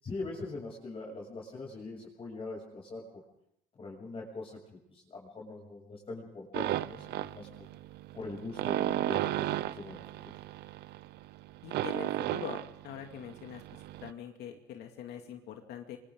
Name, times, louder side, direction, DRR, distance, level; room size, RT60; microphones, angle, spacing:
voice 1, 0.0-3.0 3.8-4.5 4.9-7.5 8.1-10.3, left 3 dB, 35° left, -2 dB, 7.4 m, -42 dB
sound 1, 6.5-14.1, right 14 dB, 75° right, 0.7 m, -35 dB
voice 2, 11.6-16.0, left 9 dB, 80° left, 3 dB, 2.5 m, -44 dB
28.0 x 25.0 x 3.9 m, 0.74 s
cardioid pair, 110°, 17 cm